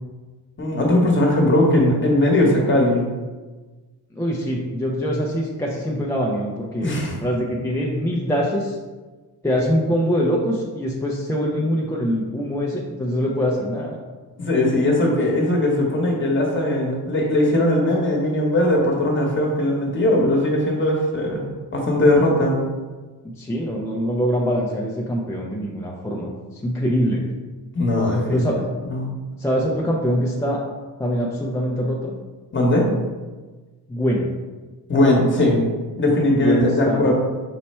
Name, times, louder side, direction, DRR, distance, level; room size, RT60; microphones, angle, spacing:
voice 1, 0.6-3.1 6.8-7.2 14.4-21.5 21.7-22.6 27.7-28.5 28.8-29.1 32.5-32.9 34.9-35.6 36.0-37.1, left 1 dB, 30° left, -1 dB, 1.1 m, -19 dB
voice 2, 4.1-8.8 9.4-14.0 23.4-26.3 26.6-27.2 28.3-28.7 29.4-30.6 31.0-32.1 33.9-34.3 36.3-37.1, equal, 10° left, -3 dB, 0.4 m, -23 dB
5.5 x 2.1 x 4.2 m, 1.3 s
cardioid pair, 120°, 38 cm